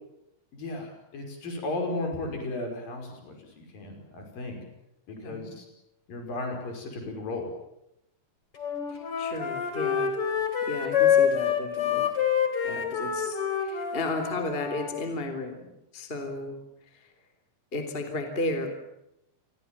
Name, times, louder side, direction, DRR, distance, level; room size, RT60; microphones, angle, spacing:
voice 1, 0.5-4.6 5.1-5.6 6.1-7.5, left 2 dB, 55° left, 3 dB, 6.9 m, -35 dB
voice 2, 5.1-5.5 8.9-10.1 10.7-12.1 12.6-15.7 15.9-16.6 16.9-17.1 17.7-18.7, left 2 dB, 15° left, 6 dB, 3.1 m, -34 dB
Wind instrument woodwind instrument, 8.6-15.0, left 8 dB, 35° left, 4.1 m, -26 dB
28.5 x 23.0 x 7.4 m, 0.84 s
omnidirectional pair, 4.8 m